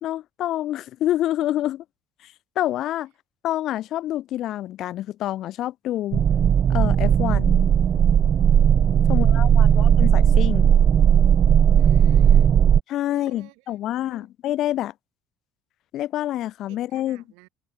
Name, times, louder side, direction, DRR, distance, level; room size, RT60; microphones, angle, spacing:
voice 1, 0.0-1.8 2.6-3.1 3.4-6.3 6.7-7.7 9.1-10.7 12.9-14.9 15.9-17.2, left 13 dB, 60° left, 0.8 m, -27 dB
sound 1, 6.1-12.8, right 8 dB, 50° right, 0.5 m, -17 dB
voice 2, 9.1-10.0 11.8-12.6 13.1-14.3 16.7-17.5, right 35 dB, 75° right, 6.5 m, -50 dB
open air
hypercardioid pair, 70°, 0 cm